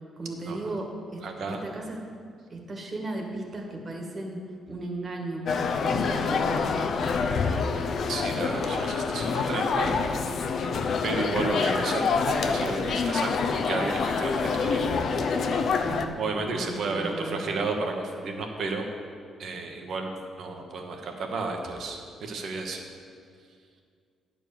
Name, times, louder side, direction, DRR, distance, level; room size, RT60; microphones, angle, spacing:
voice 1, 0.2-1.2 1.5-2.0 2.5-4.4 4.7-6.9 15.8-16.2 16.5-17.4, right 2 dB, 35° right, 1 dB, 1.6 m, -35 dB
voice 2, 1.2-1.6 7.6-7.7 8.1-9.9 10.2-10.5 11.0-14.9 16.2-18.9 19.4-20.1 20.4-22.8, right 3 dB, 65° right, 3 dB, 1.2 m, -32 dB
sound 1, 5.5-16.1, left 5 dB, 60° left, 0.6 m, -26 dB
9.8 x 4.5 x 7.1 m, 2.2 s
cardioid pair, 90°, 0 cm